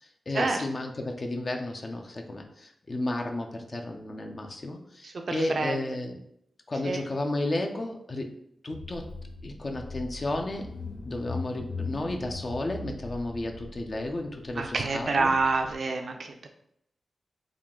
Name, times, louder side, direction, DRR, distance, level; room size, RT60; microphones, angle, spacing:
voice 1, 0.0-6.2 6.7-8.3 8.6-9.1 9.4-10.7 11.0-15.3, left 2 dB, 50° left, 2 dB, 0.5 m, -33 dB
voice 2, 5.0-5.8 6.8-7.0 14.6-16.5, right 3 dB, 65° right, 4 dB, 0.5 m, -27 dB
Car / Engine, 8.7-15.7, left 3 dB, 90° left, 0.7 m, -40 dB
3.6 x 2.3 x 3.6 m, 0.74 s
cardioid pair, 45°, 0 cm